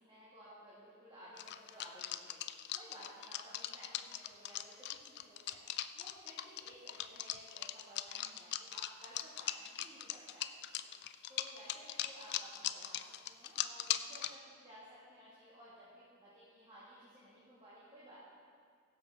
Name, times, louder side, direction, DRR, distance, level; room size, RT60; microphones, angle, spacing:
voice 1, 0.0-2.4 2.7-13.0 13.3-18.1, equal, 20° right, -11 dB, 2.3 m, -56 dB
sound 1, 1.4-14.3, left 12 dB, 50° left, 0.3 m, -39 dB
16.0 x 7.2 x 3.8 m, 2.2 s
head